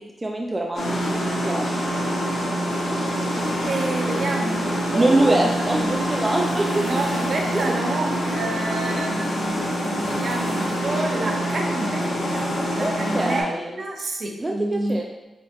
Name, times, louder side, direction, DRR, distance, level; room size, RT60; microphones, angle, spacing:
voice 1, 0.2-1.1 1.4-1.6 4.9-6.8 7.5-7.7 8.0-8.2 12.8-13.7 14.4-15.0, right 2 dB, 15° right, 0 dB, 0.3 m, -23 dB
sound 1, 0.7-13.4, equal, 75° left, 1.2 m, -25 dB
sound 2, 3.4-11.4, equal, 20° left, 1.3 m, -42 dB
voice 2, 3.6-5.9 6.8-15.0, right 2 dB, 50° right, 1 dB, 0.7 m, -29 dB
4.7 x 3.8 x 2.6 m, 1.0 s
wide cardioid pair, 150°, 0 cm